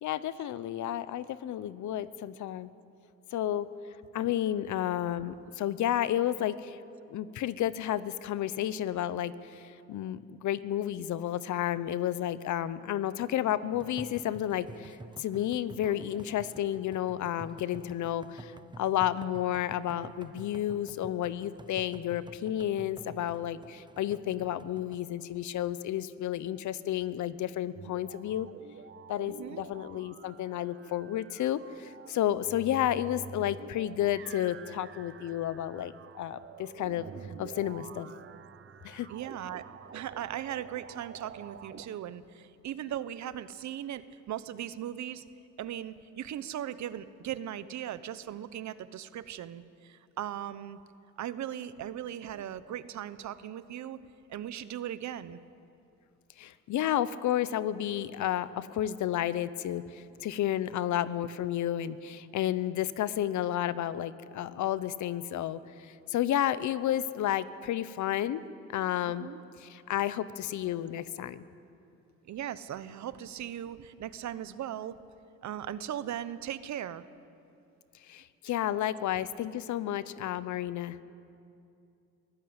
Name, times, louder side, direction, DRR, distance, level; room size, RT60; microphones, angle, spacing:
voice 1, 0.0-2.7 3.3-3.7 4.1-6.8 7.1-28.5 29.1-37.1 37.4-38.1 38.8-39.1 56.4-68.4 68.7-69.3 69.6-71.4 78.1-81.0, left 11 dB, 75° left, 16 dB, 0.9 m, -31 dB
sound 1, 13.7-25.0, right 3 dB, 15° right, 0.9 m, -50 dB
sound 2, 27.7-41.9, right 7 dB, 45° right, 1.0 m, -48 dB
voice 2, 29.3-29.6 39.1-39.6 39.9-45.2 45.6-50.8 51.2-54.0 54.3-55.4 69.2-69.4 72.3-75.0 75.4-77.0, right 11 dB, 65° right, 15 dB, 1.0 m, -38 dB
23.0 x 14.5 x 8.8 m, 2.6 s
cardioid pair, 90°, 30 cm